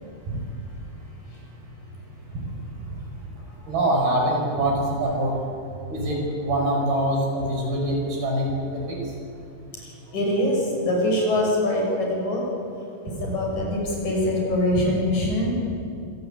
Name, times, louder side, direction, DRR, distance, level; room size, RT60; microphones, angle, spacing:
voice 1, 3.7-5.3 5.9-9.0 14.7-14.8, right 1 dB, 70° right, -1 dB, 7.6 m, -24 dB
voice 2, 9.8-12.4 13.2-15.6, left 1 dB, 45° left, -2 dB, 7.7 m, -23 dB
26.5 x 18.0 x 9.0 m, 2.5 s
omnidirectional pair, 4.6 m